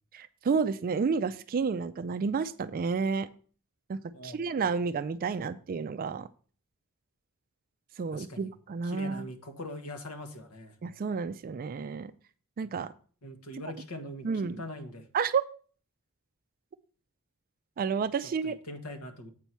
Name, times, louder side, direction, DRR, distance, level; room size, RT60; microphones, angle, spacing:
voice 1, 0.1-3.3 3.9-6.3 8.0-9.2 10.8-12.1 12.6-12.9 14.2-14.6 15.1-15.4 17.8-18.6, right 5 dB, 40° right, 12 dB, 0.3 m, -30 dB
voice 2, 4.1-4.6 8.1-8.5 8.8-10.7 13.2-14.3 14.6-15.0 18.4-19.3, left 1 dB, 75° left, 5 dB, 1.3 m, -42 dB
8.2 x 5.5 x 4.5 m, 0.43 s
head